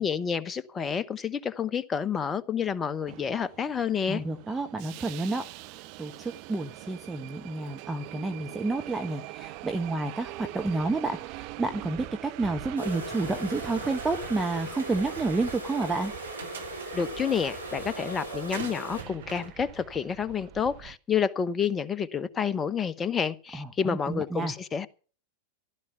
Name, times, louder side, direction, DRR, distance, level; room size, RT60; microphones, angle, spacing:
voice 1, 0.0-4.2 16.9-24.9, left 7 dB, 20° left, 0.9 m, -29 dB
Subway metro underground, 3.1-21.0, right 18 dB, 45° right, 0.7 m, -43 dB
voice 2, 4.1-16.1 23.5-24.5, right 3 dB, 10° right, 1.0 m, -30 dB
sound 1, 12.8-19.0, equal, 90° right, 3.0 m, -38 dB
sound 2, 13.5-14.5 14.8-14.9 16.0-17.1 18.5-19.5, right 6 dB, 65° right, 2.7 m, -43 dB
15.0 x 12.0 x 5.8 m
figure-of-eight pair, 90°, 0 cm